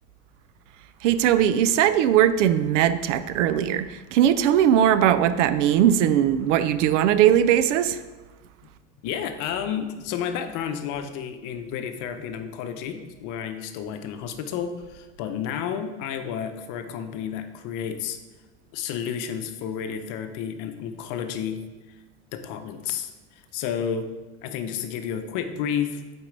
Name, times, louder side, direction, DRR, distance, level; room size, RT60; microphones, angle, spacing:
voice 1, 1.0-3.9 4.1-8.0, right 10 dB, 85° right, 13 dB, 0.5 m, -19 dB
voice 2, 9.0-18.2 18.7-21.6 22.3-24.1 24.4-26.0, left 8 dB, 60° left, 8 dB, 0.8 m, -31 dB
8.5 x 4.5 x 3.3 m, 1.2 s
supercardioid pair, 110°, 36 cm